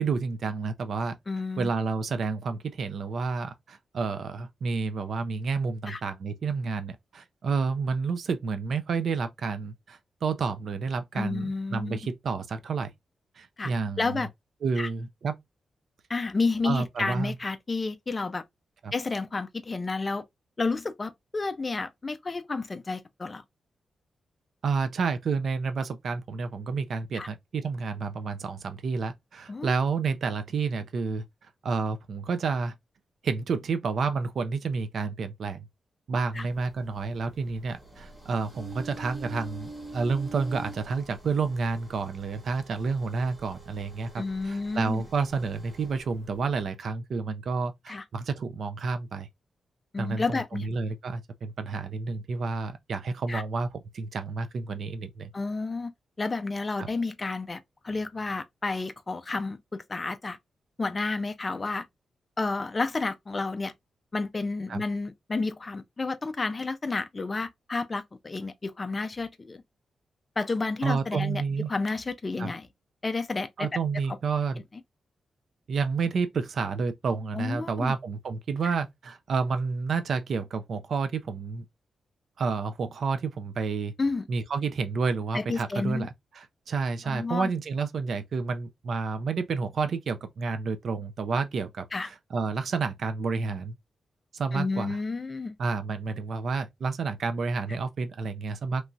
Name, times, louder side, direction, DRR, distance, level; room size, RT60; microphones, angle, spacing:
voice 1, 0.0-1.2 1.6-12.9 13.4-14.3 14.6-15.4 16.6-17.3 18.8-18.9 24.6-31.2 31.6-32.7 33.2-35.7 36.1-49.3 50.0-53.7 53.9-55.3 56.8-56.9 64.7-64.8 70.8-71.7 72.4-72.5 73.6-74.6 75.7-81.7 82.4-83.9 84.3-93.8 94.3-95.0 95.6-98.9, right 4 dB, 60° right, 0.4 m, -30 dB
voice 2, 1.3-1.7 5.9-6.0 11.1-12.0 13.6-13.7 14.0-14.3 14.8-14.9 16.1-18.4 18.9-20.2 20.6-23.4 27.1-27.3 29.5-29.7 36.3-36.5 44.2-45.0 47.9-48.0 49.9-50.7 53.3-53.4 55.3-55.9 56.2-57.6 57.8-60.4 60.8-61.9 62.4-63.7 64.1-69.6 70.4-71.4 71.7-72.7 73.0-73.7 74.1-74.2 77.3-77.9 78.6-78.7 84.0-84.3 85.3-86.1 87.0-87.5 91.9-92.1 94.5-95.6, left 3 dB, 25° left, 0.3 m, -31 dB
sound 1, 36.3-46.6, right 2 dB, 15° right, 0.8 m, -46 dB
3.0 x 2.3 x 2.5 m
wide cardioid pair, 160°, 0 cm